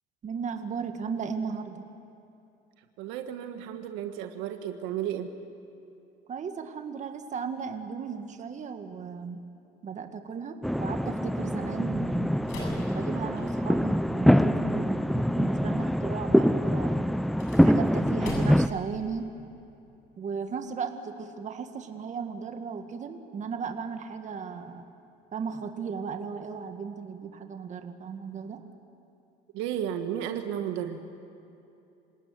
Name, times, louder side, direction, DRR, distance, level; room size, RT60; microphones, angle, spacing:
voice 1, 0.2-1.8 6.3-9.4 9.8-12.3 12.8-17.2 17.6-19.3 20.2-24.9 25.3-28.7, right 6 dB, 40° right, 6 dB, 1.9 m, -36 dB
voice 2, 3.0-5.3 29.5-31.0, right 10 dB, 90° right, 6 dB, 1.6 m, -33 dB
sound 1, 10.6-18.7, equal, ahead, 0.5 m, -24 dB
sound 2, 12.4-13.8 17.2-18.8, left 3 dB, 85° left, 7.8 m, -41 dB
27.0 x 18.0 x 9.6 m, 2.7 s
cardioid pair, 115°, 19 cm